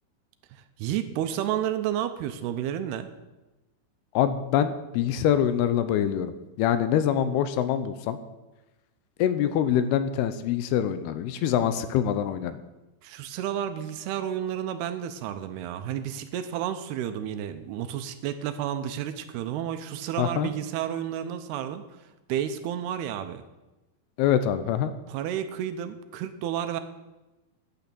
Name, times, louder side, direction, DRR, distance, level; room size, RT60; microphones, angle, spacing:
voice 1, 0.5-3.1 13.0-21.8 22.3-23.4 25.1-26.8, right 10 dB, 80° right, 10 dB, 2.6 m, -31 dB
voice 2, 4.1-8.2 9.2-12.6 20.2-20.5 24.2-24.9, left 9 dB, 80° left, 11 dB, 2.6 m, -25 dB
10.0 x 8.3 x 6.9 m, 1.0 s
omnidirectional pair, 4.7 m